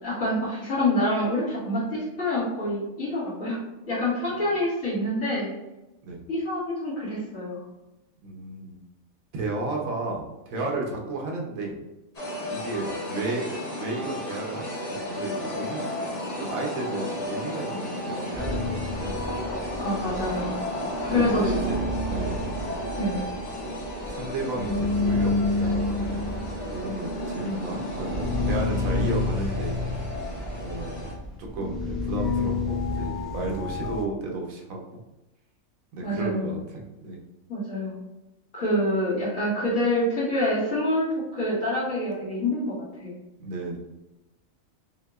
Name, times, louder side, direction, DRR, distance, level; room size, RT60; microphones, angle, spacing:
voice 1, 0.0-3.6 3.9-5.5 6.3-7.6 19.8-20.5 21.0-21.4 23.0-23.2 36.0-36.5 37.5-38.0 38.5-41.1 41.3-43.1, left 1 dB, 70° left, -9 dB, 2.2 m, -26 dB
voice 2, 8.2-8.8 9.3-11.7 12.5-15.9 16.4-19.1 21.0-21.8 22.1-22.4 24.1-26.2 26.7-29.8 30.6-31.1 31.4-35.0 35.9-37.2 43.4-43.8, right 2 dB, 75° right, 0 dB, 1.2 m, -33 dB
sound 1, 12.1-31.1, left 1 dB, 35° left, 0.8 m, -33 dB
sound 2, 18.3-20.7 21.0-34.0, left 2 dB, ahead, 0.5 m, -29 dB
5.6 x 2.7 x 2.4 m, 1.0 s
omnidirectional pair, 1.4 m